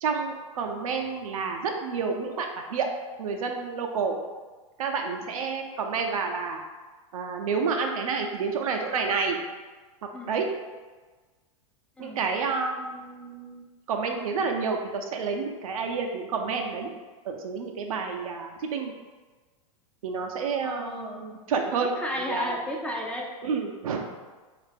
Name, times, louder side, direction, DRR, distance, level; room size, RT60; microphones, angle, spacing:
voice 1, 0.0-2.9 3.2-4.2 4.8-6.6 7.1-9.4 10.0-10.5 12.0-16.9 17.3-18.9 20.0-21.9 22.3-22.6 23.4-24.1, right 5 dB, 80° right, 3 dB, 0.5 m, -29 dB
voice 2, 20.6-21.3 21.8-23.3, left 1 dB, 5° left, -1 dB, 0.4 m, -33 dB
3.4 x 2.5 x 3.3 m, 1.3 s
hypercardioid pair, 110°, 18 cm